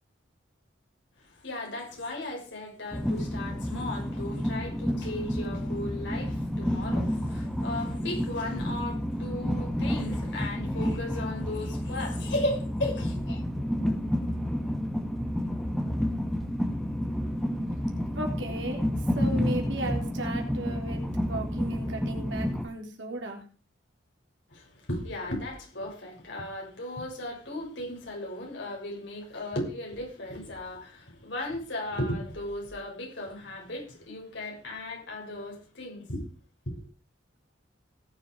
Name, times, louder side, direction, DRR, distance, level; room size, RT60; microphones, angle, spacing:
voice 1, 1.2-13.4 24.5-36.2 36.7-36.8, left 1 dB, 65° left, 6.5 m, -36 dB
Train, 2.9-22.6, equal, ahead, 2.1 m, -30 dB
voice 2, 18.2-18.8 19.2-23.4, right 1 dB, 70° right, 3.7 m, -35 dB
19.0 x 7.4 x 4.9 m
head